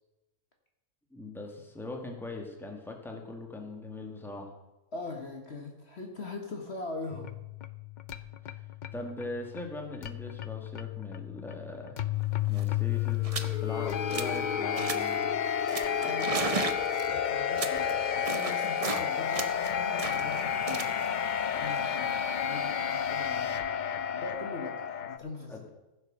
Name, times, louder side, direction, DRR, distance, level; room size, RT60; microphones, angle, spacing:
voice 1, 1.1-4.5 8.5-8.6 8.9-12.0 12.5-13.3 13.6-15.3 25.5-25.6, left 2 dB, ahead, 2 dB, 1.7 m, -41 dB
voice 2, 4.9-7.3 15.9-21.0 21.5-23.7 24.1-25.7, left 3 dB, 45° left, 3 dB, 1.5 m, -42 dB
sound 1, 7.1-25.2, left 8 dB, 85° left, 0.4 m, -31 dB
sound 2, 12.2-12.3 12.5-12.8 13.2-13.6 13.9-14.4 14.8-15.2 15.7-19.1 19.3-22.4, right 4 dB, 35° right, 0.6 m, -36 dB
15.0 x 7.3 x 6.4 m, 1.1 s
omnidirectional pair, 1.6 m